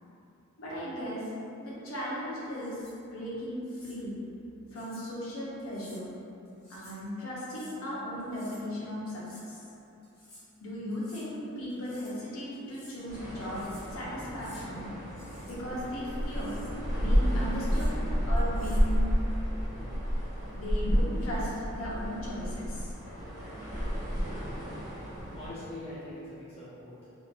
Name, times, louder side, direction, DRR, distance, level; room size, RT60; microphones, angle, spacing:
voice 1, 0.6-1.3 1.6-2.8 3.1-4.1 4.7-6.1 6.7-9.6 10.6-14.9 15.5-16.6 16.9-17.9 18.2-19.1 20.5-22.9, equal, 70° left, -7 dB, 0.7 m, -37 dB
sound 1, 2.4-3.0 3.6-4.0 4.8-5.1 5.6-6.0 6.5-7.0 7.4-7.8 8.2-8.7 9.1-9.5 10.0-10.4 10.9-11.3 11.7-12.2 12.5-13.0 13.4-13.9 14.2-14.7 15.1-15.6 16.0-16.8 17.5-17.9 18.4-18.9, left 1 dB, 45° left, 1.0 m, -55 dB
sound 2, 13.0-25.5, equal, 15° right, 0.7 m, -31 dB
voice 2, 25.3-27.1, left 1 dB, 25° left, -10 dB, 0.4 m, -43 dB
2.8 x 2.5 x 2.2 m, 2.8 s
head